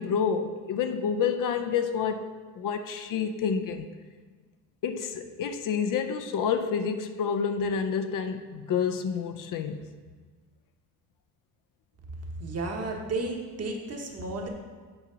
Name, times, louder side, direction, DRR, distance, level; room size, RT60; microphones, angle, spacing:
voice 1, 0.0-2.3 2.5-3.9 4.8-9.8, left 6 dB, 55° left, 7 dB, 0.5 m, -28 dB
voice 2, 12.4-14.5, right 3 dB, 40° right, 1 dB, 1.1 m, -33 dB
7.9 x 4.6 x 3.9 m, 1.4 s
cardioid pair, 105°, 38 cm